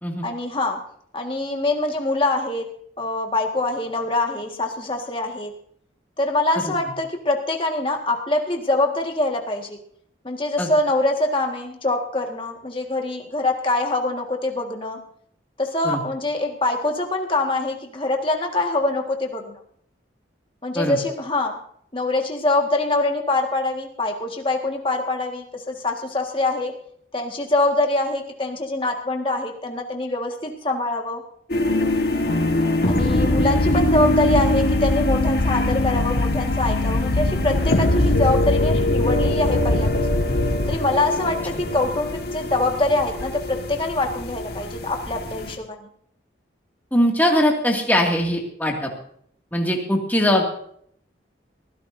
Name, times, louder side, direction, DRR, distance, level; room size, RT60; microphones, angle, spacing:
voice 1, 0.2-0.8 1.1-2.7 3.0-5.5 6.2-9.8 10.2-15.0 15.6-19.6 20.6-21.6 21.9-26.7 27.1-31.2 32.9-40.2 40.7-45.9, left 2 dB, 30° left, 2 dB, 1.7 m, -24 dB
sound 1, 31.5-45.5, left 1 dB, 55° left, 1.6 m, -23 dB
sound 2, 33.0-40.8, left 2 dB, 75° left, 0.9 m, -24 dB
voice 2, 46.9-48.9 49.5-50.4, equal, 10° left, 0 dB, 2.2 m, -21 dB
22.0 x 16.0 x 2.7 m, 0.65 s
head